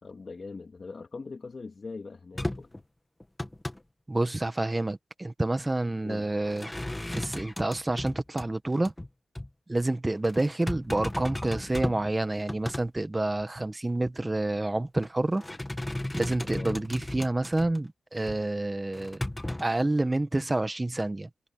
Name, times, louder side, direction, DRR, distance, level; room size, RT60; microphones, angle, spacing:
voice 1, 0.0-2.7 6.0-6.4 16.5-16.8, left 4 dB, 45° left, 3.3 m, -41 dB
sound 1, 2.3-2.8 3.2-3.8 6.4-8.5 8.8-9.1 9.3-9.5 10.2-12.1 12.4-12.9 13.4-13.5 14.8-15.1 15.4-17.8 18.3-18.4 18.9-19.6, left 1 dB, 15° left, 2.2 m, -35 dB
voice 2, 4.1-6.7 7.1-8.9 9.7-15.4 16.1-19.2 19.6-21.3, right 2 dB, 20° right, 1.4 m, -28 dB
cardioid pair, 85°, 0 cm